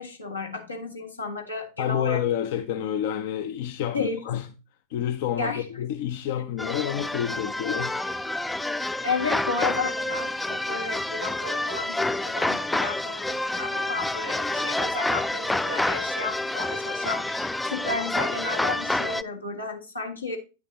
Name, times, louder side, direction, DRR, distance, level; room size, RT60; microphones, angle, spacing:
voice 1, 0.0-2.2 3.9-4.2 5.3-5.7 8.8-20.4, left 3 dB, 85° left, 1.8 m, -33 dB
voice 2, 1.8-4.5 4.9-7.9, left 10 dB, 50° left, 0.6 m, -28 dB
sound 1, 6.6-19.2, left 2 dB, 5° left, 0.3 m, -28 dB
10.0 x 6.5 x 2.8 m
figure-of-eight pair, 90°, 0 cm